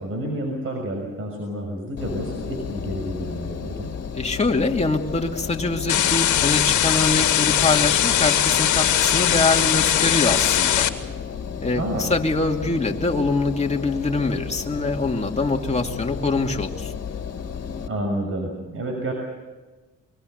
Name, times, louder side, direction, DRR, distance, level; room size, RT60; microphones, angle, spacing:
voice 1, 0.0-3.9 11.7-12.1 17.9-19.1, right 1 dB, 45° right, 2 dB, 6.3 m, -29 dB
Engine, 2.0-17.9, left 7 dB, 55° left, 2.5 m, -33 dB
voice 2, 4.1-10.9 11.6-16.9, left 3 dB, 20° left, 2 dB, 2.7 m, -24 dB
sound 1, 5.9-10.9, left 10 dB, 75° left, 2.0 m, -20 dB
24.5 x 23.5 x 6.8 m, 1.2 s
cardioid pair, 90°, 30 cm